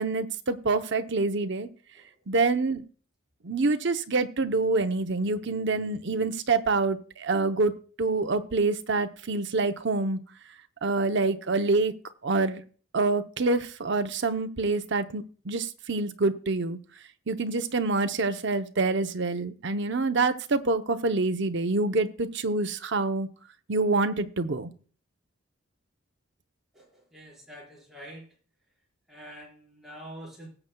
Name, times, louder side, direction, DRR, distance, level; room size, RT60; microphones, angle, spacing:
voice 1, 0.0-1.7 2.3-2.8 3.4-7.7 8.0-10.2 10.8-11.9 12.2-12.6 12.9-16.8 17.3-23.3 23.7-24.7, right 3 dB, 60° right, 7 dB, 0.8 m, -26 dB
voice 2, 27.1-28.2 29.1-30.5, equal, ahead, -4 dB, 4.9 m, -45 dB
19.5 x 7.9 x 2.3 m, 0.41 s
head